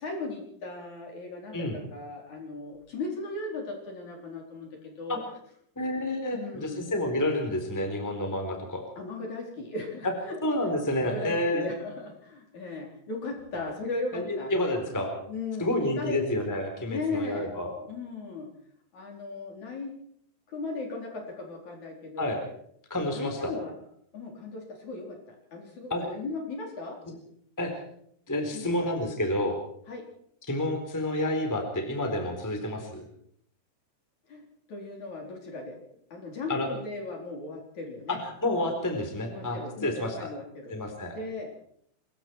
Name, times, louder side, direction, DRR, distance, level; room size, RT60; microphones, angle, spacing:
voice 1, 0.0-5.2 6.3-6.9 9.0-10.4 10.9-14.5 15.3-16.2 16.9-17.5 17.8-18.5 18.9-19.9 20.5-22.4 23.1-23.8 24.1-27.0 28.5-28.7 29.9-30.0 34.3-34.4 34.7-38.2 39.3-40.7 41.1-41.5, left 3 dB, 45° left, 1 dB, 5.2 m, -37 dB
voice 2, 5.8-8.8 10.0-10.1 10.4-11.7 14.1-15.1 15.6-17.7 22.2-22.4 22.9-23.5 25.9-26.0 27.6-27.8 28.3-29.6 30.5-33.0 36.5-36.7 38.1-40.3 40.7-41.2, left 1 dB, 5° left, 4 dB, 3.6 m, -29 dB
25.5 x 22.0 x 4.7 m, 0.66 s
omnidirectional pair, 4.8 m